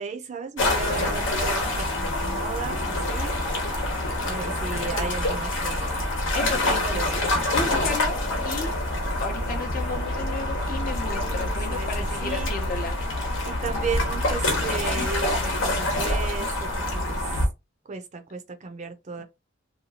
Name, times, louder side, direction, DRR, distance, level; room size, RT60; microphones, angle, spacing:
voice 1, 0.0-3.4 4.2-6.0 6.7-7.4 11.1-12.5 13.5-17.4 17.9-19.2, right 5 dB, 40° right, 0.5 m, -35 dB
sound 1, 0.6-17.5, left 1 dB, 80° left, 0.9 m, -26 dB
voice 2, 6.3-7.0 7.3-8.8 9.2-13.0 19.2-19.3, left 3 dB, 45° left, 0.5 m, -33 dB
2.8 x 2.3 x 2.8 m
head